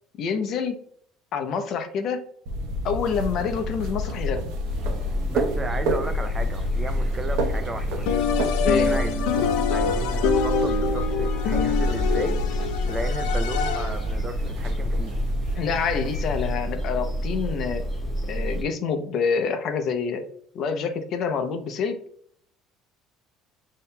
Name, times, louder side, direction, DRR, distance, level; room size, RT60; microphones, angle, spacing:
voice 1, 0.2-0.8 1.3-2.2 2.8-4.5 8.6-8.9 15.6-17.8 18.3-20.2 20.5-22.0, left 6 dB, 40° left, 6 dB, 0.6 m, -27 dB
sound 1, 2.5-16.5, left 1 dB, 80° right, 0.8 m, -29 dB
sound 2, 4.6-18.6, right 1 dB, 5° left, 1.1 m, -30 dB
voice 2, 5.3-8.1 8.7-12.4 12.9-15.2, right 2 dB, 15° right, 8 dB, 0.4 m, -34 dB
sound 3, 8.1-14.1, left 6 dB, 85° left, 0.4 m, -25 dB
8.2 x 2.8 x 2.2 m, 0.63 s
cardioid pair, 180°, 0 cm